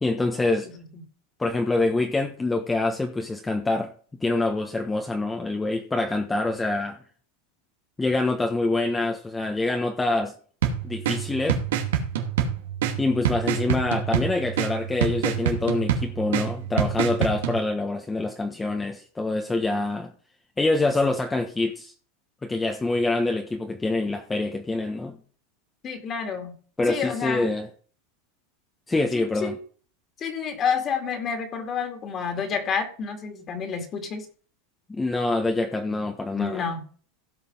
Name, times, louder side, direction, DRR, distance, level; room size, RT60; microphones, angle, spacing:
voice 1, 0.0-0.7 1.4-3.9 4.2-7.0 8.0-10.3 10.8-11.6 13.0-20.1 20.6-21.9 22.4-25.2 26.8-27.7 28.9-29.6 34.9-36.7, left 2 dB, 10° left, 1.2 m, -25 dB
sound 1, 10.6-17.6, right 8 dB, 85° right, 2.3 m, -26 dB
voice 2, 25.8-26.5 26.9-27.6 29.1-29.6 30.2-34.3 36.3-36.8, left 6 dB, 35° left, 2.5 m, -29 dB
16.0 x 5.5 x 5.5 m
supercardioid pair, 125°, 0 cm